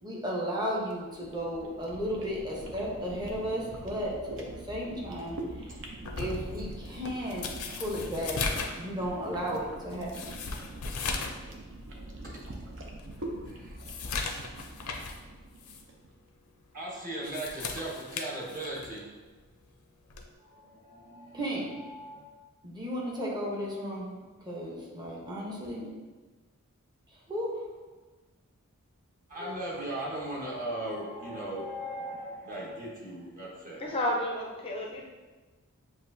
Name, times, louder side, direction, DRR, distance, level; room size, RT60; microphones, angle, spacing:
voice 1, 0.0-5.7 6.2-7.5 7.8-8.4 8.8-10.4 21.3-21.6 22.6-24.2 24.4-25.9 27.3-27.6, equal, 20° right, -3 dB, 0.8 m, -34 dB
sound 1, 0.9-16.1, right 1 dB, 60° right, 0.7 m, -44 dB
turning pages of a book with thick pages, 6.0-11.4 11.8-11.9 12.5-12.6 13.0-15.2 15.6-15.8 17.0-19.0 20.1-20.3, left 4 dB, 80° left, 0.6 m, -37 dB
voice 2, 13.4-13.8 16.7-19.1 20.4-22.4 29.3-34.0, right 1 dB, 40° right, -5 dB, 1.3 m, -38 dB
voice 3, 33.8-35.0, left 1 dB, 25° left, -1 dB, 0.5 m, -31 dB
7.6 x 2.6 x 2.6 m, 1.3 s
head